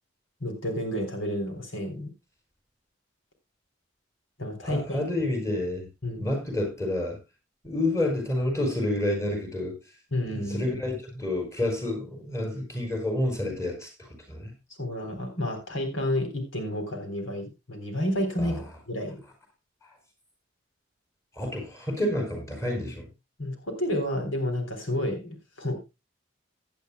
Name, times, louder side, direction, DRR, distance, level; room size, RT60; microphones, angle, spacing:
voice 1, 0.4-2.1 4.4-5.1 6.0-6.3 10.1-10.8 14.8-19.2 23.4-25.8, left 1 dB, 90° left, 3.8 m, -30 dB
voice 2, 4.6-5.9 6.2-7.2 7.6-9.8 10.3-14.5 18.4-18.5 19.8-19.9 21.3-23.1, left 1 dB, 15° left, 5.0 m, -29 dB
16.5 x 10.5 x 2.3 m
head